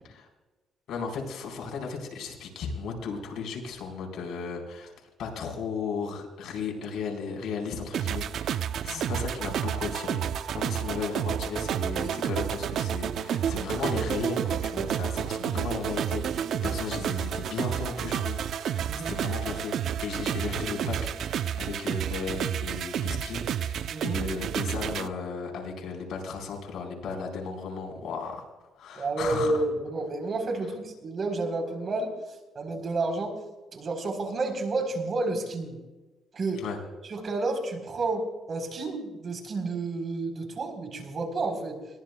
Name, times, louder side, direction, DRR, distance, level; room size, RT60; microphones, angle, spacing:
voice 1, 0.9-4.9 5.2-28.4 28.8-29.6 36.6-36.8, left 5 dB, 75° left, 1 dB, 4.3 m, -35 dB
sound 1, 7.9-25.1, right 9 dB, 70° right, 0.6 m, -30 dB
voice 2, 18.8-19.2 23.9-24.2 29.0-32.1 32.6-33.3 33.7-35.8 36.3-36.6 37.1-41.8, right 2 dB, 50° right, 4 dB, 4.0 m, -30 dB
21.5 x 18.5 x 2.3 m, 1.1 s
cardioid pair, 90°, 0 cm